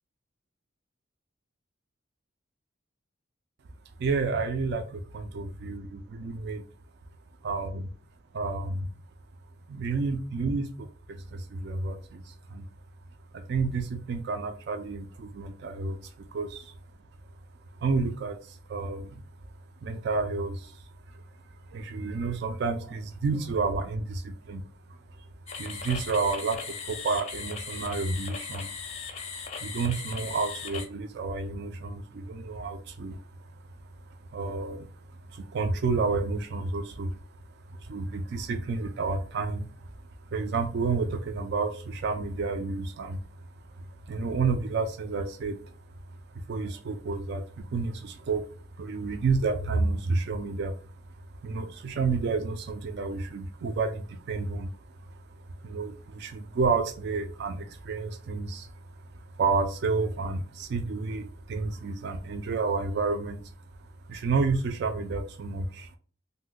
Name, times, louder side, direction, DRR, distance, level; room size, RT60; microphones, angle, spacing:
voice 1, 4.0-6.6 7.4-7.9 8.3-8.9 9.7-12.6 13.3-16.7 17.8-19.2 19.8-20.8 21.1-21.2 21.7-24.6 25.1-25.2 25.6-28.7 29.6-33.6 34.1-37.2 37.7-39.9 40.3-43.2 43.8-45.8 46.3-48.5 48.8-50.9 51.4-63.5 63.8-66.0, right 4 dB, 55° right, 7 dB, 0.3 m, -30 dB
sound 1, 25.5-30.9, left 5 dB, 35° left, 0.5 m, -38 dB
2.6 x 2.1 x 3.7 m, 0.40 s
head